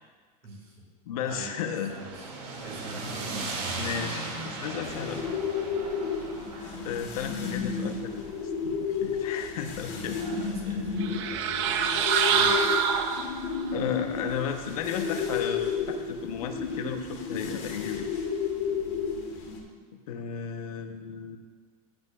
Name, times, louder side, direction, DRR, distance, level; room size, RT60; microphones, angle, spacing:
voice 1, 0.4-0.7 1.3-2.3 2.6-3.1 9.7-12.8, right 3 dB, 30° right, -2 dB, 2.1 m, -44 dB
voice 2, 1.1-1.9 3.8-5.2 6.8-8.3 8.6-10.2 13.7-18.1 20.1-21.4, left 8 dB, 70° left, 5 dB, 0.9 m, -34 dB
sound 1, 1.6-9.8, right 3 dB, 90° right, 2.3 m, -38 dB
sound 2, 4.8-19.6, left 6 dB, 45° left, 1.6 m, -32 dB
sound 3, 11.0-13.6, right 7 dB, 50° right, 0.6 m, -25 dB
15.0 x 8.0 x 2.4 m, 1.5 s
supercardioid pair, 180°, 19 cm